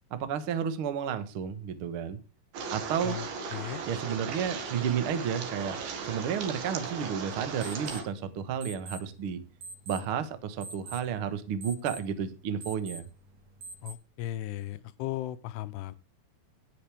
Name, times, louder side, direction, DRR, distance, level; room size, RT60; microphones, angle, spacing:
voice 1, 0.1-2.2 2.7-3.2 3.8-5.8 6.0-9.4 9.9-13.0, right 8 dB, 90° right, 11 dB, 1.1 m, -32 dB
sound 1, 2.5-8.0, right 5 dB, 70° right, 3.7 m, -37 dB
voice 2, 3.0-3.8 13.8-16.0, left 14 dB, 90° left, 13 dB, 2.8 m, -36 dB
sound 2, 3.5-13.9, right 3 dB, 50° right, 2.8 m, -49 dB
19.5 x 6.7 x 3.4 m, 0.31 s
omnidirectional pair, 4.6 m